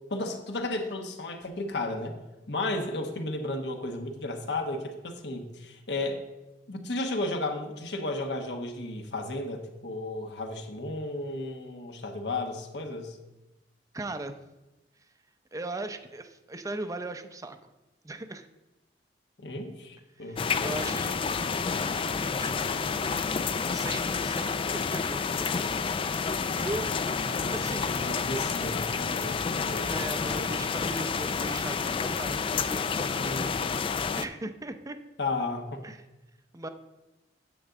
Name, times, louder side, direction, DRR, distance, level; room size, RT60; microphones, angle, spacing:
voice 1, 0.1-2.2 2.5-6.2 6.7-13.2 19.4-20.9 27.2-30.6 33.1-33.8 35.2-35.9, left 2 dB, 70° left, 4 dB, 1.2 m, -34 dB
voice 2, 13.9-14.4 15.5-17.7 18.0-18.5 20.2-22.8 23.7-25.6 26.5-27.1 27.5-28.0 29.8-32.9 34.2-35.0 35.8-36.0 36.5-36.7, right 2 dB, 20° right, 8 dB, 0.6 m, -38 dB
sound 1, 20.4-34.3, left 5 dB, 30° left, 0.3 m, -29 dB
9.7 x 3.9 x 7.3 m, 1.0 s
head